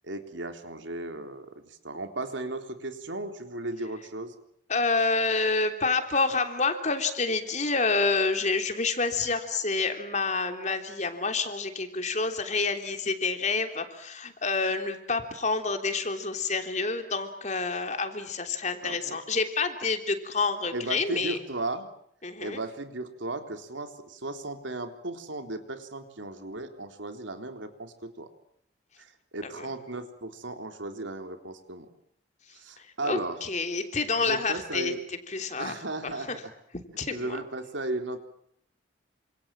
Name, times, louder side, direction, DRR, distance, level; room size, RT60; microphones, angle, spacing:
voice 1, 0.0-4.3 18.8-19.2 20.7-21.9 22.4-28.3 29.0-31.9 32.5-33.4 34.1-35.0 35.6-36.3 37.1-38.2, right 2 dB, 75° right, 6 dB, 3.6 m, -35 dB
voice 2, 4.7-21.4 22.2-22.6 29.4-29.7 33.1-34.9 35.3-35.7 36.0-36.1 36.7-37.4, left 3 dB, 35° left, 6 dB, 3.3 m, -28 dB
28.0 x 27.0 x 7.5 m, 0.69 s
head